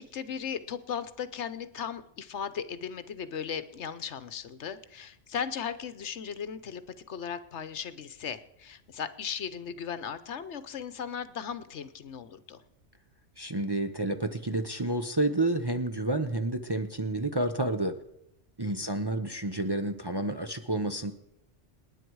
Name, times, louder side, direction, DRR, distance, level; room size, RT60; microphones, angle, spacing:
voice 1, 0.0-6.8 7.1-12.6 18.6-19.0, left 7 dB, 70° left, 13 dB, 1.2 m, -37 dB
voice 2, 13.4-17.9 18.6-21.1, right 2 dB, 25° right, 6 dB, 0.7 m, -30 dB
27.5 x 10.0 x 4.7 m, 0.82 s
omnidirectional pair, 1.3 m